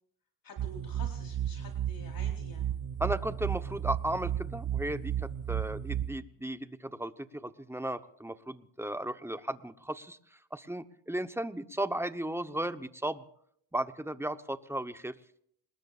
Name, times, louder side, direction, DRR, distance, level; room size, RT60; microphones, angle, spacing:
voice 1, 0.4-2.7, left 2 dB, 50° left, 1 dB, 4.2 m, -49 dB
sound 1, 0.6-6.1, right 10 dB, 60° right, 1.9 m, -34 dB
voice 2, 3.0-10.2 10.5-13.2 13.7-15.1, right 1 dB, 5° right, 11 dB, 1.0 m, -35 dB
27.0 x 20.5 x 2.5 m, 0.67 s
cardioid pair, 95°, 44 cm